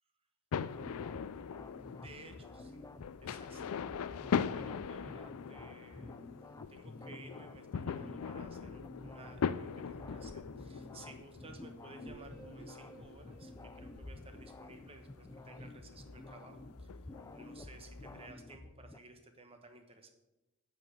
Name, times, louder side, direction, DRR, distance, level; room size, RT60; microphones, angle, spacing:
sound 1, 0.5-18.3, left 7 dB, 80° left, 0.4 m, -41 dB
sound 2, 0.7-19.0, left 2 dB, 15° left, 0.4 m, -50 dB
voice 1, 2.0-2.9 3.2-3.8 4.5-6.2 6.7-16.9 17.3-20.1, right 3 dB, 25° right, 6 dB, 1.2 m, -56 dB
sound 3, 11.9-14.9, right 3 dB, 55° right, 1.9 m, -57 dB
9.0 x 5.9 x 8.0 m, 1.0 s
head